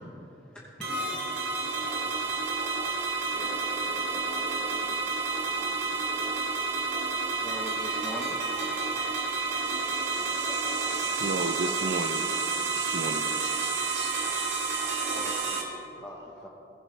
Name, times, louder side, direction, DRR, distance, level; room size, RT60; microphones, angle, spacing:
voice 1, 0.5-0.9 7.4-8.4 15.1-15.6 16.0-16.5, equal, 5° left, -4 dB, 1.1 m, -41 dB
sound 1, 0.8-15.6, right 4 dB, 85° right, 1.6 m, -30 dB
voice 2, 3.2-6.3 9.1-11.3, left 1 dB, 30° left, -5 dB, 3.2 m, -47 dB
voice 3, 11.2-12.2 12.6-14.2, right 3 dB, 70° right, 9 dB, 0.6 m, -34 dB
15.5 x 15.5 x 3.4 m, 2.8 s
head